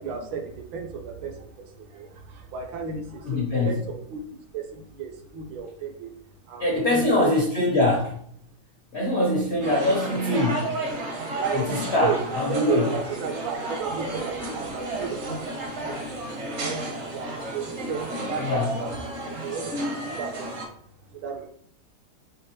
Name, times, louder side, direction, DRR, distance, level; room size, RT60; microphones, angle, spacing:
voice 1, 0.0-6.1 6.4-7.3 11.2-12.2 12.5-20.7 21.1-21.5, right 6 dB, 75° right, 3 dB, 1.3 m, -34 dB
voice 2, 3.2-3.8 6.6-8.2 8.9-10.7 11.5-12.9 18.4-18.7, left 1 dB, 70° left, -2 dB, 0.6 m, -23 dB
sound 1, 9.6-20.6, right 1 dB, 55° right, 0.8 m, -32 dB
5.2 x 2.9 x 2.9 m, 0.62 s
omnidirectional pair, 2.3 m